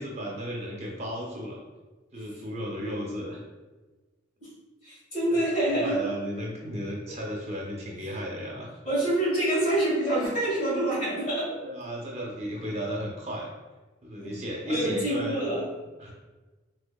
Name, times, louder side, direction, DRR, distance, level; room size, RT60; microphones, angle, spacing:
voice 1, 0.0-1.6 2.1-3.4 5.3-5.4 5.7-8.7 11.6-13.5 14.0-15.4 16.0-16.1, equal, 30° right, -2 dB, 0.5 m, -34 dB
voice 2, 4.8-6.0 8.8-11.6 14.2-14.4 14.6-15.7, right 1 dB, 35° left, -7 dB, 1.5 m, -26 dB
3.5 x 3.2 x 2.2 m, 1.2 s
head